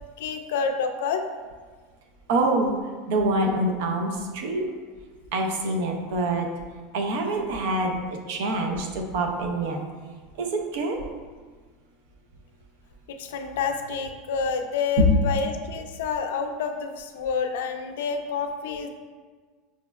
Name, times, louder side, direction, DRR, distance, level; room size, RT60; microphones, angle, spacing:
voice 1, 0.2-1.2 13.1-18.9, left 5 dB, 85° left, 6 dB, 0.3 m, -28 dB
voice 2, 2.3-2.7 3.1-4.7 5.3-6.5 6.9-9.8 10.4-11.0 15.0-15.1, right 1 dB, 60° right, 3 dB, 0.5 m, -25 dB
5.9 x 2.0 x 2.3 m, 1.5 s
supercardioid pair, 180°, 0 cm